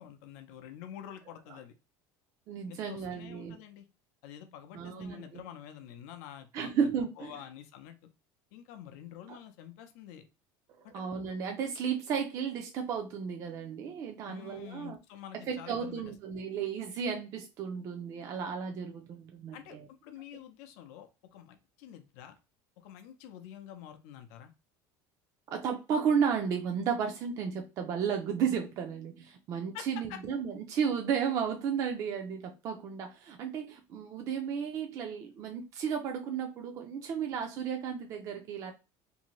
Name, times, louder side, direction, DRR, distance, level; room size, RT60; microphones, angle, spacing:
voice 1, 0.0-1.7 2.7-3.9 4.2-6.7 7.2-8.0 8.5-10.3 10.8-11.0 14.3-16.0 19.5-22.4 22.8-24.5 29.7-30.2, left 10 dB, 85° left, 0.5 m, -48 dB
voice 2, 2.5-3.6 4.7-5.4 6.5-7.3 9.3-9.4 10.9-15.0 15.3-19.9 25.5-38.7, right 7 dB, 40° right, 0.4 m, -33 dB
2.6 x 2.6 x 2.9 m
cardioid pair, 155°, 8 cm